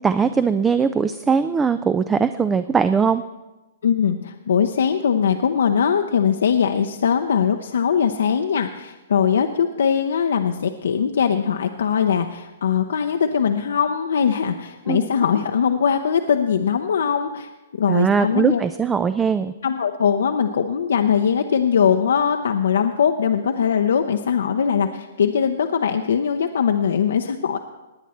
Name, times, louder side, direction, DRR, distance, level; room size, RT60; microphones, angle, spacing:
voice 1, 0.0-3.2 14.9-15.1 17.9-19.5, right 6 dB, 15° right, 12 dB, 0.4 m, -20 dB
voice 2, 3.8-17.5 17.8-18.6 19.6-27.6, left 7 dB, 70° left, 6 dB, 0.7 m, -21 dB
19.5 x 9.2 x 4.3 m, 1.1 s
hypercardioid pair, 125°, 0 cm